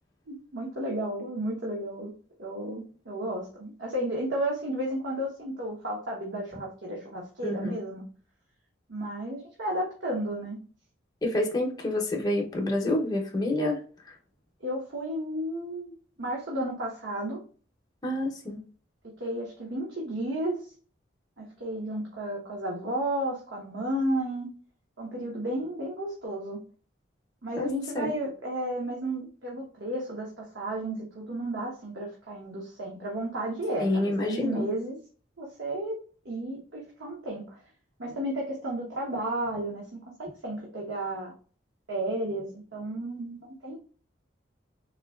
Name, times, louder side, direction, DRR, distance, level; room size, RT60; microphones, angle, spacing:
voice 1, 0.3-2.1 2.4-8.0 8.9-10.6 14.6-15.9 16.2-17.4 19.0-20.7 21.4-24.5 25.0-26.6 27.4-35.0 35.4-36.0 36.2-37.6 38.0-41.3 41.9-43.8, right 1 dB, 70° right, -3 dB, 0.9 m, -33 dB
voice 2, 7.4-7.8 11.2-13.8 14.1-14.2 18.0-18.6 27.6-27.7 27.9-28.1 33.8-34.7, left 1 dB, 20° left, -1 dB, 0.6 m, -28 dB
3.7 x 2.7 x 2.3 m, 0.40 s
head